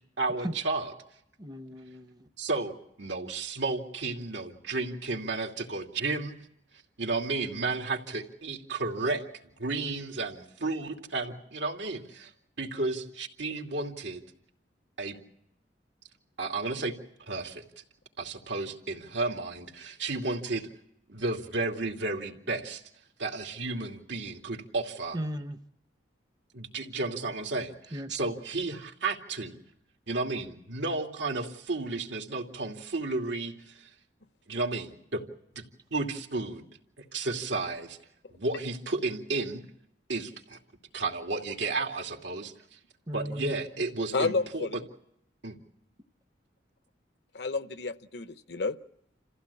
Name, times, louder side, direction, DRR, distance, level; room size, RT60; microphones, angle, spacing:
voice 1, 0.2-0.9 2.4-6.4 7.0-9.2 9.6-12.3 12.6-14.2 15.0-15.2 16.4-17.0 17.3-17.8 18.2-20.7 21.1-22.8 23.2-25.2 26.5-29.6 30.1-33.9 34.5-35.2 35.5-35.6 35.9-36.6 37.0-38.0 38.3-39.6 40.1-40.6 40.9-42.8 43.1-44.7 45.4-45.6, right 3 dB, 85° right, 2 dB, 2.7 m, -33 dB
voice 2, 1.4-2.3 25.1-25.6 27.9-28.2 43.1-43.5, right 1 dB, 20° right, 9 dB, 0.8 m, -36 dB
voice 3, 44.1-44.8 47.3-48.8, left 4 dB, 65° left, 12 dB, 0.8 m, -30 dB
28.0 x 15.5 x 8.4 m, 0.78 s
head